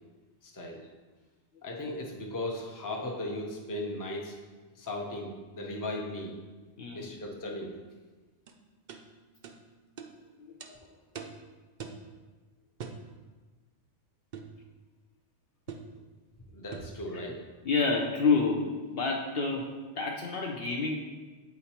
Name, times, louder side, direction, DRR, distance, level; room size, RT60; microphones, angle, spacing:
voice 1, 0.4-0.8 1.6-4.4 4.8-6.4 6.9-7.7 16.5-17.4, left 1 dB, 20° left, 0 dB, 0.6 m, -37 dB
voice 2, 6.8-7.1 10.4-10.8 17.1-17.2 17.6-21.0, left 4 dB, 60° left, 1 dB, 0.8 m, -29 dB
sound 1, 8.5-8.6 8.9-9.0 9.4-9.6 10.0-10.1 10.6-10.7 11.2-11.4 11.8-12.0 12.8-13.0 14.3-14.6 15.7-15.9 16.7-17.0, right 6 dB, 55° right, 0.5 m, -42 dB
8.3 x 4.4 x 2.9 m, 1.3 s
omnidirectional pair, 1.2 m